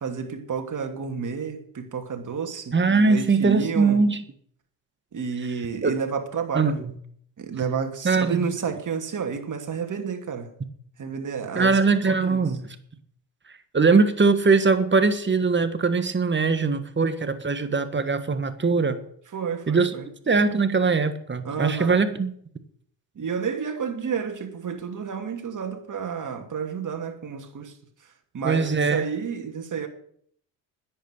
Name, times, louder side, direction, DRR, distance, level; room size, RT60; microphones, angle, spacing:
voice 1, 0.0-4.0 5.1-6.8 7.4-10.5 11.0-11.8 12.1-12.4 19.3-20.1 21.4-22.0 23.2-27.8 28.3-29.9, right 6 dB, 40° right, 2.8 m, -30 dB
voice 2, 2.7-4.2 5.8-5.9 6.5-6.9 8.0-8.4 11.6-12.8 13.7-19.0 19.7-19.9 20.3-22.3 28.4-29.0, right 4 dB, 25° right, 1.6 m, -21 dB
10.0 x 8.4 x 9.6 m
supercardioid pair, 80°, 46 cm